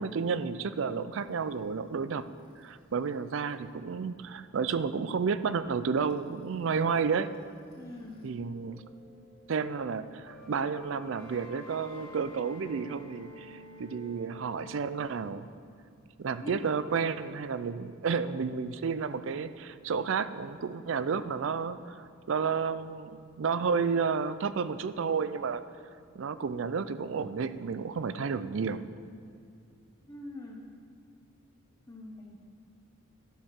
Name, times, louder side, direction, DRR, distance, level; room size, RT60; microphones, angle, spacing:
voice 1, 0.0-2.2 2.6-7.3 8.2-8.8 9.5-15.5 16.2-25.6 26.1-28.8, right 5 dB, 65° right, 13 dB, 0.4 m, -31 dB
sound 1, 1.1-8.3 8.6-15.0, left 1 dB, 70° left, 2.0 m, -53 dB
voice 2, 7.8-8.3 16.4-16.6 30.1-30.6 31.9-32.4, left 1 dB, 15° left, -1 dB, 0.7 m, -44 dB
11.5 x 6.5 x 5.9 m, 2.4 s
head